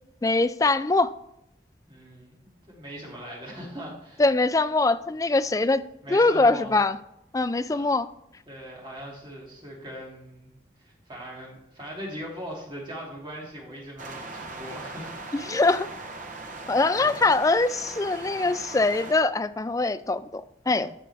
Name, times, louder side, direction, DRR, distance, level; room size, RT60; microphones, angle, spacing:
voice 1, 0.2-1.1 4.2-5.8 6.1-7.0 7.3-8.1 15.3-15.9 16.7-20.9, left 3 dB, 20° left, 0.3 m, -23 dB
voice 2, 1.9-2.3 2.7-4.2 6.0-6.7 7.7-7.9 8.5-10.5 10.8-15.4 17.0-17.3, equal, 25° right, 2.7 m, -40 dB
sound 1, 14.0-19.1, right 3 dB, 45° right, 0.9 m, -39 dB
13.5 x 6.2 x 3.5 m
head